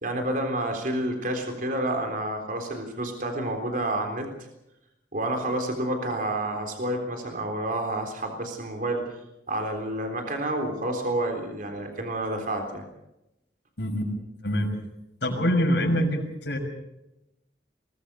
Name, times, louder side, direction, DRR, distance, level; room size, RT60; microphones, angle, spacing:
voice 1, 0.0-4.3 5.1-9.0 9.5-12.9, right 1 dB, 50° right, 4 dB, 3.7 m, -29 dB
voice 2, 13.8-14.1 14.4-14.8 15.2-16.6, equal, 75° left, 2 dB, 6.1 m, -25 dB
23.5 x 19.5 x 6.9 m, 0.89 s
head